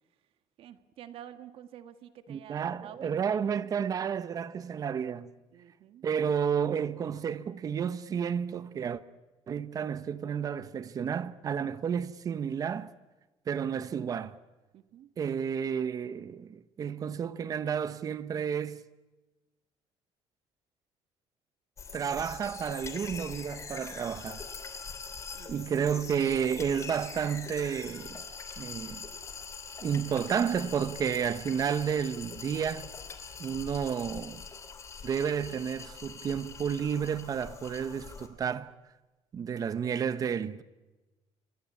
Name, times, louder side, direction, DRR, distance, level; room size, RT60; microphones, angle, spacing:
voice 1, 0.6-3.7 5.5-6.1 14.7-15.1 25.3-25.8, right 10 dB, 55° right, 1.8 m, -50 dB
voice 2, 2.3-5.3 6.0-9.0 9.5-12.9 13.5-14.4 15.2-18.8 21.9-24.5 25.5-28.2 28.6-29.1 29.8-32.9 33.4-34.4 35.0-38.7 39.3-40.6, right 7 dB, 35° right, 1.0 m, -31 dB
sound 1, 21.8-38.3, left 5 dB, 25° left, 3.0 m, -43 dB
28.5 x 23.5 x 8.6 m
cardioid pair, 165°, 11 cm